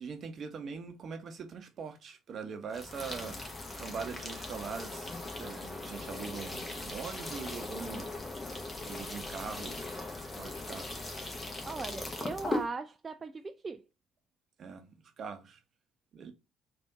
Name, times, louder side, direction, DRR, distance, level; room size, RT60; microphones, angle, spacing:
voice 1, 0.0-3.4 3.8-8.1 8.8-11.1 14.6-14.9 15.2-15.6 16.1-16.3, right 5 dB, 50° right, 0.7 m, -42 dB
sound 1, 2.7-12.7, left 2 dB, 25° left, 1.1 m, -39 dB
voice 2, 11.7-13.8, right 4 dB, 30° right, 0.3 m, -39 dB
3.4 x 2.6 x 3.8 m
figure-of-eight pair, 50°, 0 cm